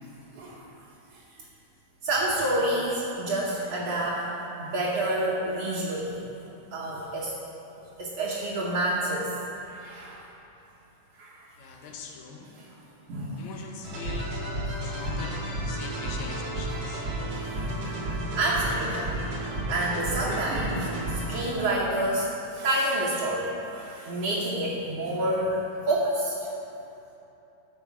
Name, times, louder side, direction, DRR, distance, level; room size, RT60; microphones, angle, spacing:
voice 1, 0.3-0.6 1.1-1.2 2.0-4.3 4.6-6.2 6.7-7.3 7.8-10.3 11.2-11.5 12.4-12.7 13.1-13.5 14.0-14.1 17.4-17.7 18.4-19.1 19.7-22.3 22.5-26.5, right 1 dB, 65° right, -6 dB, 1.9 m, -28 dB
voice 2, 11.6-12.5 13.4-14.4 14.8-17.4 20.0-20.1, left 5 dB, 80° left, 1 dB, 2.2 m, -42 dB
sound 1, 13.8-21.8, right 1 dB, 50° right, 1.5 m, -32 dB
13.5 x 4.8 x 4.8 m, 3.0 s
omnidirectional pair, 3.3 m